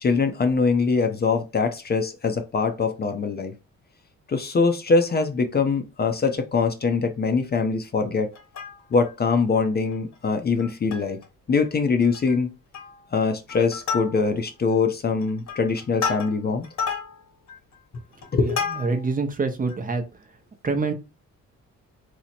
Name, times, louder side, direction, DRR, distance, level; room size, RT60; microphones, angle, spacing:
voice 1, 0.0-3.5 4.3-8.3 8.9-11.2 11.5-12.5 13.1-16.7 18.3-18.7, left 4 dB, 35° left, 0.6 m, -23 dB
Plucked string instrument, 8.3-9.1 9.6-9.7 9.9-10.1 10.6-11.2 11.6-11.7 12.0-12.4 12.7-13.1 13.5-14.5 15.1-19.2 19.7-19.8, left 6 dB, 65° left, 1.1 m, -32 dB
voice 2, 18.4-20.0 20.6-20.9, right 4 dB, 30° right, 0.6 m, -26 dB
2.8 x 2.1 x 4.0 m
cardioid pair, 90°, 30 cm